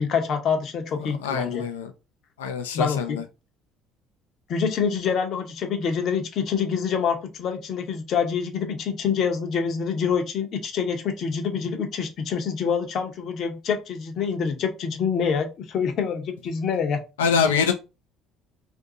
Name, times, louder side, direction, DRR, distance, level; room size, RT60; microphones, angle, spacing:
voice 1, 0.0-1.6 2.7-3.2 4.5-17.0, left 6 dB, 55° left, 0.7 m, -26 dB
voice 2, 1.0-1.9 2.4-3.2 17.2-17.7, left 6 dB, 85° left, 0.3 m, -24 dB
2.6 x 2.5 x 3.7 m
hypercardioid pair, 60°, 0 cm